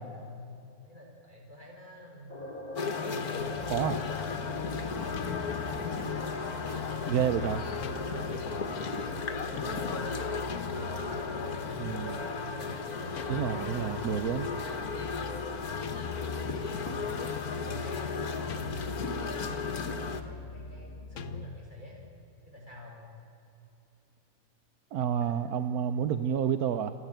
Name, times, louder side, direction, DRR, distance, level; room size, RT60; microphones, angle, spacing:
voice 1, 0.0-2.4 3.0-5.2 5.6-8.6 9.0-10.3 10.8-14.4 15.1-15.3 16.5-19.7 20.2-22.0 22.5-23.1 25.3-25.4, left 2 dB, 30° right, -2 dB, 6.0 m, -47 dB
sound 1, 2.3-15.5, left 1 dB, 30° left, 4.3 m, -44 dB
sound 2, 2.8-20.2, left 5 dB, 80° left, 1.9 m, -35 dB
sound 3, 3.4-21.5, left 3 dB, 55° left, 1.2 m, -42 dB
voice 2, 7.1-7.6 11.8-12.2 13.3-14.5 24.9-26.9, right 8 dB, 80° right, 11 dB, 1.2 m, -29 dB
28.5 x 11.5 x 8.9 m, 2.8 s
omnidirectional pair, 1.6 m